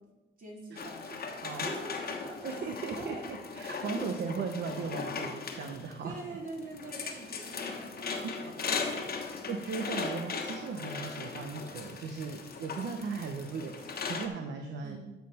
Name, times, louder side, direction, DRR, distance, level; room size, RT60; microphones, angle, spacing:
voice 1, 0.4-1.2 1.5-3.3 4.0-4.1 6.0-9.4 14.8-15.0, right 1 dB, 45° right, -3 dB, 3.6 m, -44 dB
sound 1, 0.8-14.3, left 5 dB, 50° left, 1.3 m, -38 dB
voice 2, 2.4-6.2 8.2-8.3 9.5-15.0, right 5 dB, 60° right, 4 dB, 0.9 m, -37 dB
13.0 x 5.8 x 4.3 m, 1.1 s
cardioid pair, 90°, 20 cm